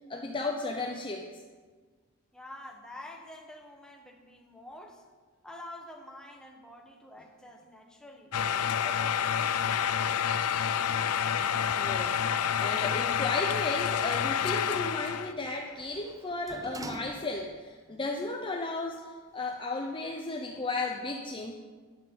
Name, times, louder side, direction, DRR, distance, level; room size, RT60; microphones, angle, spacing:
voice 1, 0.1-1.3 11.7-21.5, left 2 dB, 25° left, 2 dB, 0.8 m, -34 dB
voice 2, 2.3-5.0 5.4-8.4 8.6-10.1, left 1 dB, 5° left, 2 dB, 1.5 m, -48 dB
sound 1, 8.3-15.3, left 8 dB, 85° left, 0.5 m, -28 dB
Sliding door, 13.6-17.7 18.2-18.3, right 2 dB, 15° right, 0.6 m, -48 dB
12.5 x 10.5 x 5.6 m, 1.5 s
head